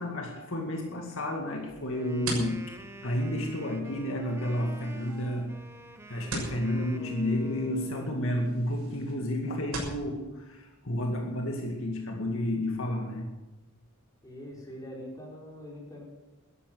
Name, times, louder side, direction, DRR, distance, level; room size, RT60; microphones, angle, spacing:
voice 1, 0.0-5.6 6.1-13.3, left 1 dB, 60° left, 1 dB, 2.2 m, -31 dB
sound 1, 1.7-10.0, right 2 dB, 70° right, 6.6 m, -42 dB
Wind instrument woodwind instrument, 1.9-8.2, right 1 dB, 10° right, 1.1 m, -47 dB
voice 2, 14.2-16.0, equal, 15° left, -3 dB, 4.9 m, -43 dB
13.5 x 11.5 x 7.8 m, 1.1 s
head